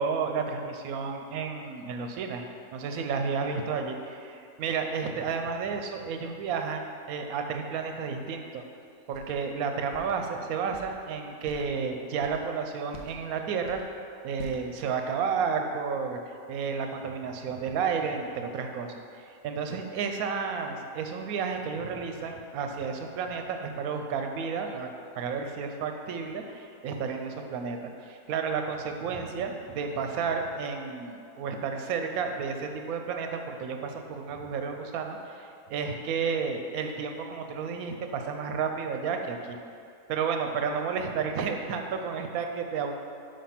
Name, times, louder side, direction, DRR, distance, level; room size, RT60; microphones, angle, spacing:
voice 1, 0.0-2.4 2.7-8.6 9.1-13.8 14.2-24.9 25.1-27.8 28.0-39.6 40.1-42.9, right 5 dB, 85° right, 4 dB, 1.1 m, -32 dB
sound 1, 9.1-9.4 9.9-10.2 10.7-10.9 11.4-11.7 12.2-12.5 12.9-13.3 13.6-13.9 14.4-14.6, left 2 dB, 60° left, 0.8 m, -45 dB
5.2 x 5.2 x 5.8 m, 2.4 s
omnidirectional pair, 1.5 m